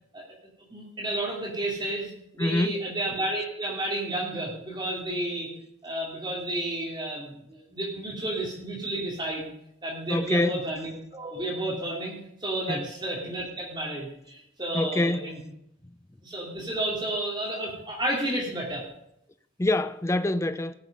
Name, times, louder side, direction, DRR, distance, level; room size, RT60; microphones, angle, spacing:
voice 1, 0.7-5.5 5.8-9.5 9.8-15.4 16.2-18.8, right 1 dB, 20° right, 2.6 m, -31 dB
voice 2, 2.4-2.8 10.1-10.6 12.7-12.9 14.7-15.3 15.9-16.0 19.6-20.7, left 1 dB, 15° left, 0.4 m, -26 dB
18.0 x 6.6 x 5.3 m
head